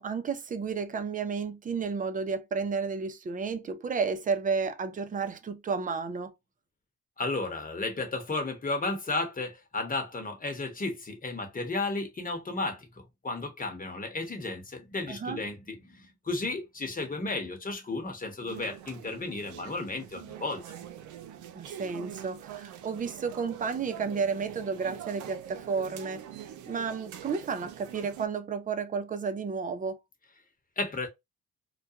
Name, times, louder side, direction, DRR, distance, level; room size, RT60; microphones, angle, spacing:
voice 1, 0.0-6.3 15.1-15.4 21.5-26.2 26.7-30.0, right 5 dB, 25° right, 0.5 m, -32 dB
voice 2, 7.2-20.8 30.8-31.1, left 3 dB, 30° left, 1.1 m, -33 dB
sound 1, 18.5-28.3, right 10 dB, 80° right, 0.6 m, -44 dB
2.4 x 2.2 x 2.8 m
cardioid pair, 90°, 30 cm